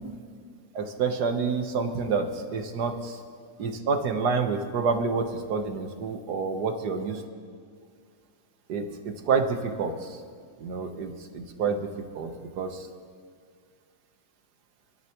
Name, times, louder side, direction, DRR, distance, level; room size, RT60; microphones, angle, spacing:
voice 1, 0.7-3.2 3.6-7.2 8.7-10.1 10.6-12.3 12.6-12.8, right 5 dB, 65° right, 5 dB, 1.7 m, -28 dB
26.0 x 13.0 x 3.0 m, 2.1 s
omnidirectional pair, 2.0 m